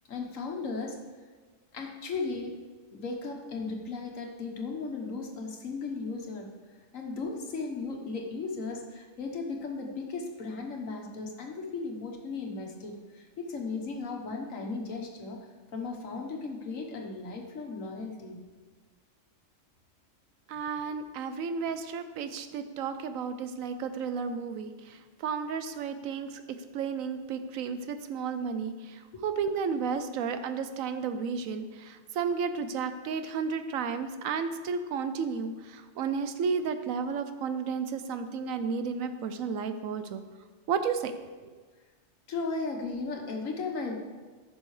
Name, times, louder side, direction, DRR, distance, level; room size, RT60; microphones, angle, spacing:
voice 1, 0.1-1.0 1.7-2.5 2.9-6.5 6.9-15.4 15.7-18.4 29.1-29.2 42.3-43.9, left 4 dB, 80° left, 2 dB, 1.6 m, -36 dB
voice 2, 20.5-24.7 25.2-26.3 26.7-28.7 29.2-35.5 36.0-40.2 40.7-41.1, right 6 dB, 90° right, 9 dB, 1.1 m, -32 dB
14.5 x 6.1 x 3.2 m, 1.4 s
omnidirectional pair, 1.4 m